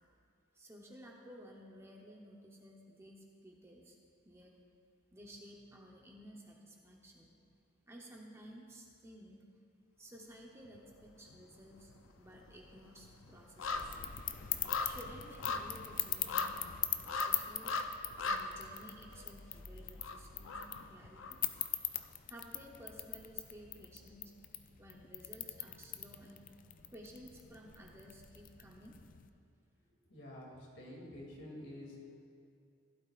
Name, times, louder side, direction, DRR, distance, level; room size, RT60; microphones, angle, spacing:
voice 1, 0.5-4.0 4.2-4.6 5.1-7.3 7.9-9.4 10.0-11.9 12.2-13.9 14.8-16.8 17.1-17.7 18.2-21.4 22.3-24.3 24.8-26.5 26.9-28.9, equal, 15° right, -1 dB, 0.9 m, -54 dB
sound 1, 10.7-11.4 11.7-21.7 22.0-22.1, left 3 dB, 85° left, 0.7 m, -41 dB
sound 2, 13.6-29.3, left 11 dB, 45° left, 0.5 m, -42 dB
voice 2, 30.1-32.0, left 1 dB, 65° left, -3 dB, 2.8 m, -49 dB
15.5 x 12.0 x 2.5 m, 2.5 s
head